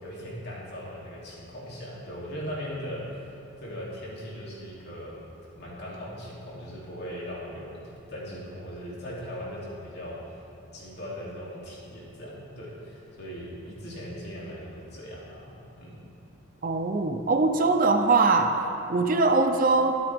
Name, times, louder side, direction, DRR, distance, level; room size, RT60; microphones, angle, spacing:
voice 1, 0.0-3.3 3.6-5.2 5.6-7.8 8.1-10.2 10.7-15.5 15.8-16.1, equal, 50° left, -6 dB, 3.0 m, -39 dB
voice 2, 16.6-18.6 18.9-20.0, right 3 dB, 40° right, 6 dB, 0.6 m, -22 dB
23.0 x 7.9 x 3.6 m, 2.8 s
head